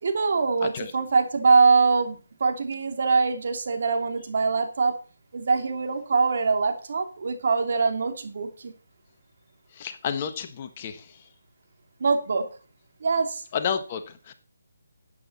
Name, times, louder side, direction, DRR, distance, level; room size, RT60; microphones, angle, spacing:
voice 1, 0.0-4.9 5.3-8.7 12.0-12.4 13.0-13.4, right 4 dB, 55° right, 5 dB, 2.8 m, -23 dB
voice 2, 0.6-0.9 9.7-11.2 13.5-14.3, left 7 dB, 30° left, 8 dB, 1.4 m, -31 dB
12.5 x 9.2 x 4.2 m, 0.36 s
figure-of-eight pair, 155°, 0 cm